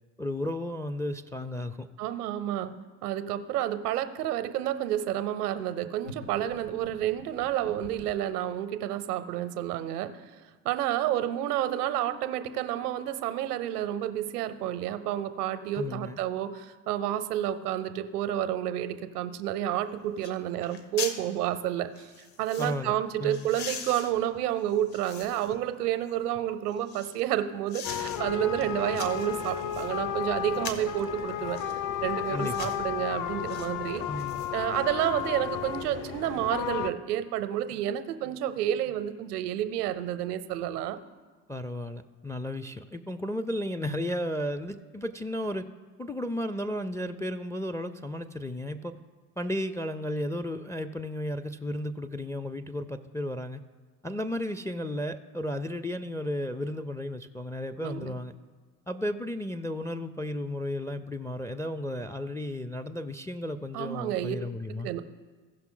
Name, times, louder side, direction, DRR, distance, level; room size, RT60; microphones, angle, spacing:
voice 1, 0.2-1.9 15.8-16.2 22.6-23.5 32.3-32.7 34.0-34.4 41.5-45.7 46.0-49.0 49.4-53.6 54.0-58.4 58.9-64.9, left 1 dB, 5° left, 9 dB, 0.4 m, -34 dB
voice 2, 2.0-2.7 3.0-10.1 10.6-22.1 22.4-31.6 32.0-34.0 34.5-41.0 57.8-58.1 63.7-64.4 64.7-65.0, right 11 dB, 85° right, 11 dB, 0.7 m, -30 dB
sound 1, 6.0-8.2, left 3 dB, 80° left, 1.1 m, -46 dB
sound 2, 19.7-19.8 20.2-20.4 20.6-21.2 22.0-22.8 23.3-25.6 26.1-27.2 27.7-28.2 28.6-29.9 30.5-31.0 31.5-31.8 32.4-32.8 33.5-33.7 34.0-34.9 35.2-35.3, left 6 dB, 60° left, 1.3 m, -41 dB
sound 3, 27.8-36.9, left 9 dB, 45° left, 0.8 m, -33 dB
16.0 x 5.8 x 3.8 m, 1.5 s
hypercardioid pair, 60°, 45 cm